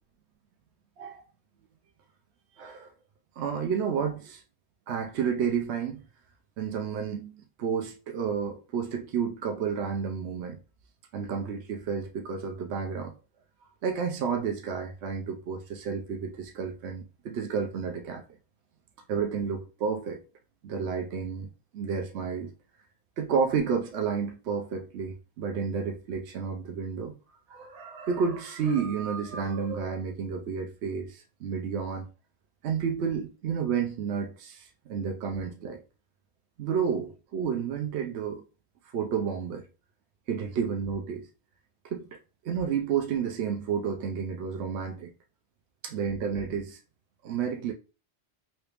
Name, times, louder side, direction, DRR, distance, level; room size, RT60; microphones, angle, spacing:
voice 1, 2.6-2.9 3.4-4.4 4.9-6.0 6.6-10.6 11.1-13.1 13.8-18.2 19.1-20.2 20.6-22.5 23.2-27.2 27.5-32.1 32.6-35.8 36.6-38.4 38.9-39.7 40.3-41.3 41.9-42.2 42.4-45.1 45.8-46.8 47.2-47.7, right 6 dB, 85° right, 0.9 m, -31 dB
3.2 x 2.9 x 3.3 m
omnidirectional pair, 1.1 m